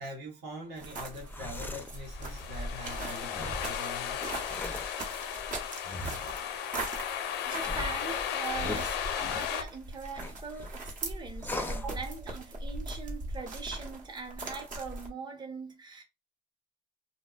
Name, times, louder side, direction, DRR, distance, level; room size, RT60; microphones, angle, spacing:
voice 1, 0.0-4.2, left 1 dB, 85° right, 1.3 m, -43 dB
sound 1, 0.8-15.1, right 2 dB, 50° right, 0.9 m, -40 dB
sound 2, 1.1-1.9 3.3-3.7 4.4-4.9 5.8-6.4 7.6-9.5 10.2-10.7 11.4-11.9, left 2 dB, 10° left, 0.4 m, -40 dB
sound 3, 2.0-9.6, left 9 dB, 90° left, 0.5 m, -35 dB
voice 2, 7.5-16.0, right 4 dB, 25° right, 0.7 m, -41 dB
2.8 x 2.2 x 2.3 m
cardioid pair, 110°, 17 cm